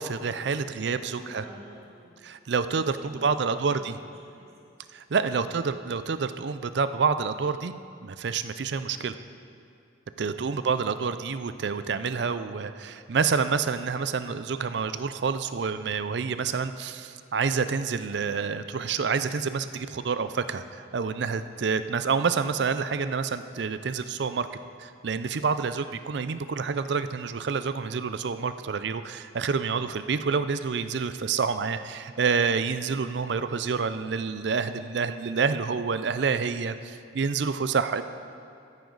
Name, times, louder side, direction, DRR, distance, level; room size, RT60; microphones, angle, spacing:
voice 1, 0.0-1.4 2.2-4.0 4.9-7.7 8.0-9.1 10.2-24.5 24.8-38.0, right 5 dB, 65° right, 11 dB, 0.4 m, -28 dB
voice 2, 1.0-2.1 2.8-4.5 5.3-5.5 29.5-29.8, right 1 dB, 35° right, -5 dB, 2.1 m, -49 dB
14.0 x 9.5 x 3.9 m, 2.5 s
head